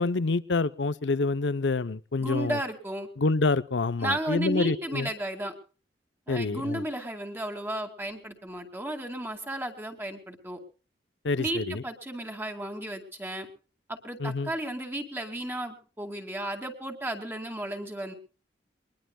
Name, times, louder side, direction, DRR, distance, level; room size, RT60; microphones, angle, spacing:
voice 1, 0.0-2.6 3.2-5.1 6.3-6.8 11.2-11.8 14.2-14.5, left 3 dB, 80° left, 17 dB, 0.7 m, -27 dB
voice 2, 2.2-3.1 4.0-5.5 6.3-10.6 11.4-13.5 13.9-18.1, right 1 dB, 10° right, 4 dB, 2.3 m, -34 dB
23.0 x 20.5 x 2.3 m, 0.36 s
head